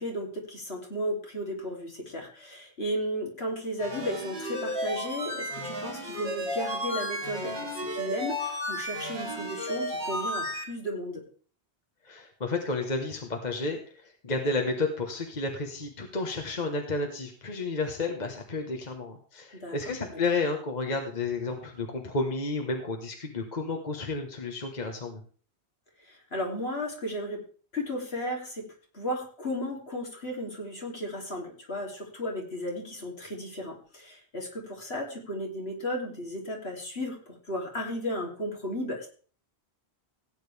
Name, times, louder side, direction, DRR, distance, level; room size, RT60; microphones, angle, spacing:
voice 1, 0.0-11.2 19.5-19.8 20.1-20.2 26.0-27.4 27.7-39.1, equal, 65° left, -1 dB, 3.3 m, -34 dB
sound 1, 3.8-10.6, equal, 70° right, 3.7 m, -33 dB
voice 2, 12.0-25.2, left 3 dB, 40° left, 3 dB, 1.4 m, -31 dB
16.5 x 9.1 x 3.4 m, 0.41 s
omnidirectional pair, 1.1 m